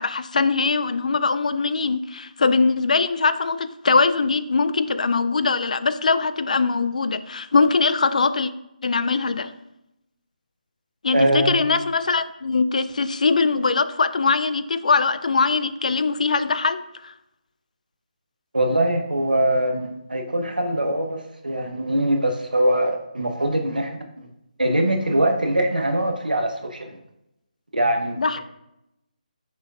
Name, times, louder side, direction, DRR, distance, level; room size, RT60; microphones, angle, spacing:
voice 1, 0.0-8.5 8.8-9.5 11.0-17.1 28.2-28.4, left 4 dB, 60° left, 13 dB, 0.3 m, -21 dB
voice 2, 11.1-11.6 18.5-24.0 24.6-27.0 27.7-28.2, right 1 dB, 85° right, 4 dB, 0.8 m, -22 dB
5.0 x 4.4 x 2.3 m, 0.85 s
figure-of-eight pair, 150°, 5 cm